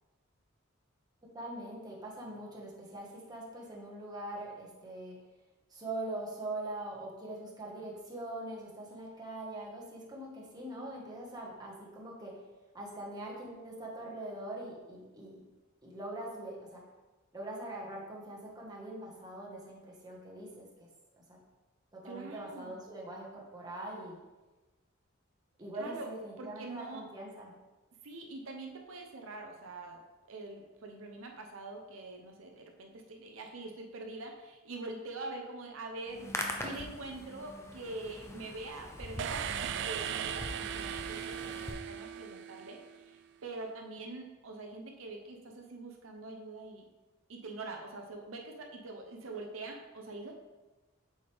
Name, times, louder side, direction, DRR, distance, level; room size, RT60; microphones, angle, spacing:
voice 1, 1.3-5.2 5.7-12.4 12.7-15.4 15.8-16.8 17.3-20.9 21.1-21.2 21.9-24.1 25.6-27.5, right 1 dB, 20° right, -4 dB, 1.5 m, -42 dB
voice 2, 22.0-22.8 25.8-26.1 26.4-27.0 28.0-30.0 30.3-36.3 36.6-46.8 47.3-50.4, right 2 dB, 75° right, 2 dB, 0.7 m, -44 dB
Hands, 36.0-41.7, left 1 dB, 15° left, 0.7 m, -42 dB
sound 1, 39.2-43.0, right 9 dB, 60° right, 0.3 m, -38 dB
7.8 x 5.1 x 3.5 m, 1.2 s
head